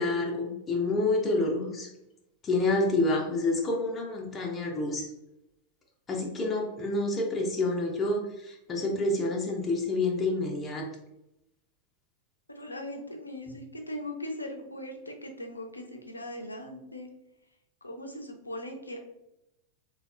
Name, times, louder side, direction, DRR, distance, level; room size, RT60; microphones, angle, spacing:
voice 1, 0.0-1.9 2.4-5.1 6.1-10.9, left 2 dB, 25° left, 1 dB, 0.5 m, -28 dB
voice 2, 12.6-17.1 17.8-19.0, left 1 dB, 80° left, 3 dB, 0.5 m, -39 dB
3.4 x 2.2 x 2.3 m, 0.87 s
figure-of-eight pair, 90°, 0 cm